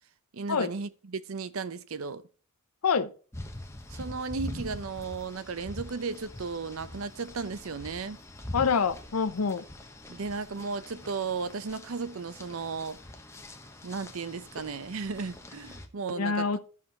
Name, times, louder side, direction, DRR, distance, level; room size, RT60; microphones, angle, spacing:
voice 1, 0.3-2.2 3.9-8.2 10.1-13.0 13.8-16.6, right 4 dB, 70° right, 0.6 m, -35 dB
sound 1, 3.3-15.9, left 1 dB, 10° left, 0.8 m, -44 dB
voice 2, 8.5-9.6 16.2-16.6, left 5 dB, 90° left, 0.6 m, -26 dB
13.5 x 5.8 x 2.8 m
head